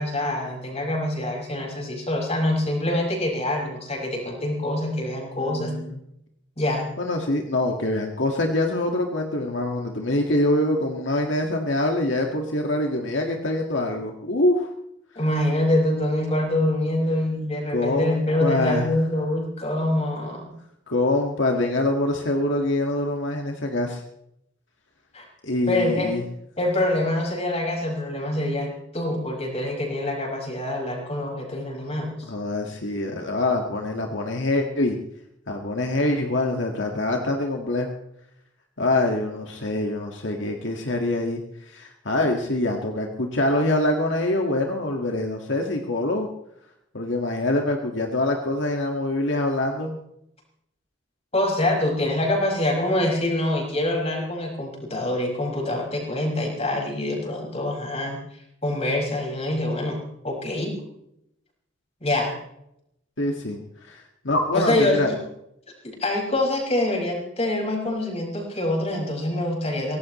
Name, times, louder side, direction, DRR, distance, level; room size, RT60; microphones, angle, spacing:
voice 1, 0.0-5.7 6.6-6.9 15.2-20.5 25.1-25.2 25.7-26.1 26.6-32.3 51.3-58.2 58.6-60.0 60.2-60.8 62.0-62.4 64.5-65.2 65.8-70.0, left 1 dB, 35° left, 0 dB, 5.8 m, -25 dB
voice 2, 5.4-6.0 7.0-14.7 17.7-18.9 20.9-24.0 25.4-26.2 32.2-35.0 35.5-37.9 38.8-41.4 41.7-46.3 46.9-50.0 63.2-63.6 63.9-65.1, left 1 dB, 75° left, 2 dB, 1.9 m, -24 dB
23.5 x 17.5 x 3.2 m, 0.78 s
head